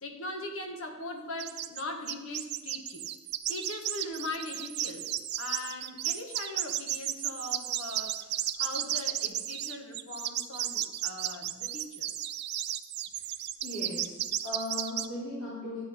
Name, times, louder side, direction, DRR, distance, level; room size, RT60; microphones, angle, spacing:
voice 1, 0.0-3.1 3.5-12.3, left 2 dB, 65° left, 3 dB, 1.6 m, -40 dB
sound 1, 1.4-1.8 2.1-15.1, right 13 dB, 50° right, 0.5 m, -33 dB
voice 2, 13.6-14.1 14.4-15.8, left 1 dB, 90° left, -11 dB, 4.4 m, -37 dB
12.5 x 8.4 x 5.1 m, 1.2 s
head